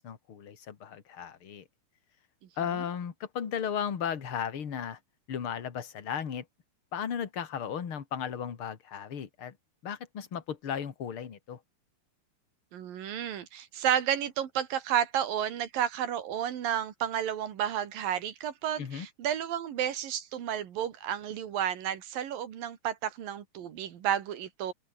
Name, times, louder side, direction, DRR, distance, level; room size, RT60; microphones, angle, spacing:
voice 1, 0.0-1.6 2.6-5.0 5.3-6.4 6.9-9.5 9.8-11.6 18.8-19.1, left 8 dB, 40° left, 2.8 m, -35 dB
voice 2, 12.7-24.7, right 10 dB, 90° right, 3.8 m, -31 dB
omnidirectional pair, 3.9 m